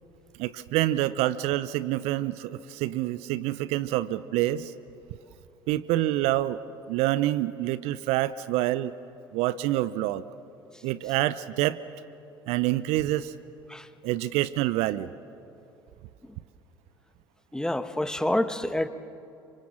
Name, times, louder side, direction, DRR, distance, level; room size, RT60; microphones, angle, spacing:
voice 1, 0.4-4.7 5.7-6.6 6.9-8.9 9.3-10.2 10.8-11.8 12.5-13.3 14.0-15.1, right 15 dB, 60° right, 17 dB, 0.7 m, -27 dB
voice 2, 17.5-18.9, left 1 dB, 5° left, 11 dB, 1.5 m, -27 dB
28.0 x 26.0 x 7.4 m, 2.8 s
figure-of-eight pair, 60°, 12 cm